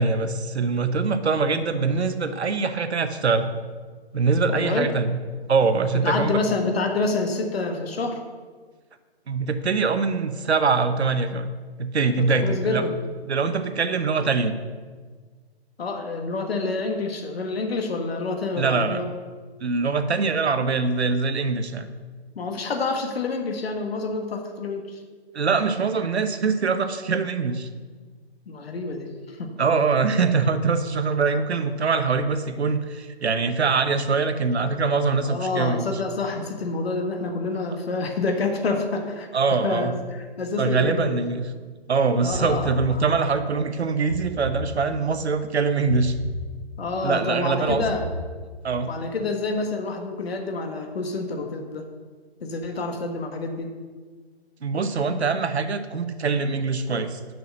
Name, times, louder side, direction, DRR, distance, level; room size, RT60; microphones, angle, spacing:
voice 1, 0.0-3.5 4.1-5.2 5.5-6.4 9.3-11.5 11.8-12.8 13.2-14.5 18.6-19.0 19.6-21.9 25.3-27.7 29.6-36.0 39.3-39.9 40.6-41.5 41.9-46.2 47.0-47.8 48.6-48.9 54.6-57.2, right 4 dB, 80° right, 10 dB, 0.9 m, -23 dB
voice 2, 4.5-4.9 6.0-8.2 12.2-12.9 15.8-19.1 22.3-25.0 28.5-29.5 35.2-39.3 39.6-41.2 42.2-42.8 46.8-48.1 48.9-51.9 52.4-53.7, left 3 dB, 65° left, 4 dB, 1.5 m, -28 dB
sound 1, 42.3-43.4 44.1-45.2 45.9-47.0 47.6-48.8, right 1 dB, 60° right, 2.3 m, -35 dB
7.0 x 6.1 x 6.5 m, 1.5 s
hypercardioid pair, 145°, 32 cm